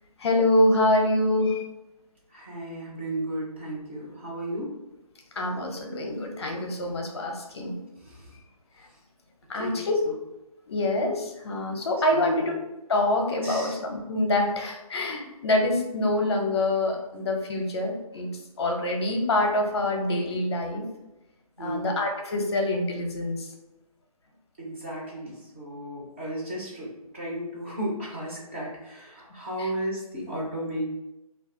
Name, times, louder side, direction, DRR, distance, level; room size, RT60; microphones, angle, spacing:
voice 1, 0.2-1.6 5.4-7.8 9.5-9.9 10.7-12.5 12.9-18.3 18.6-20.9 21.6-23.5 29.6-29.7, left 1 dB, 45° left, 2 dB, 0.6 m, -25 dB
voice 2, 2.3-4.7 8.0-8.3 9.5-9.8 12.1-12.5 13.4-13.8 21.6-21.9 24.6-30.8, right 1 dB, 20° right, -5 dB, 0.5 m, -34 dB
2.3 x 2.3 x 3.6 m, 0.94 s
hypercardioid pair, 160°, 19 cm